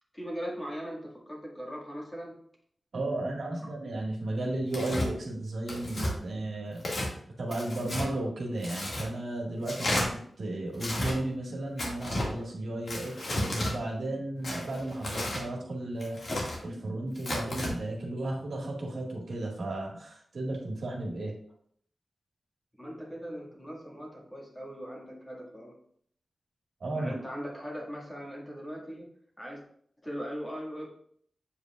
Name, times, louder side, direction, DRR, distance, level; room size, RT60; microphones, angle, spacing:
voice 1, 0.1-2.4 3.6-3.7 22.8-25.8 26.9-29.1 29.4-29.6 30.0-30.9, equal, 15° left, -3 dB, 1.8 m, -39 dB
voice 2, 2.9-7.1 7.4-21.3 26.8-27.1, right 1 dB, 70° right, -1 dB, 1.6 m, -34 dB
Tearing, 4.7-5.1 5.7-6.1 6.8-7.1 7.5-8.1 8.6-9.1 9.6-10.1 10.7-11.1 11.8-12.3 12.9-13.7 14.4-15.4 16.0-16.6 17.2-17.7, left 1 dB, 60° left, 1.9 m, -32 dB
8.1 x 5.0 x 2.4 m, 0.63 s
wide cardioid pair, 95°, 0 cm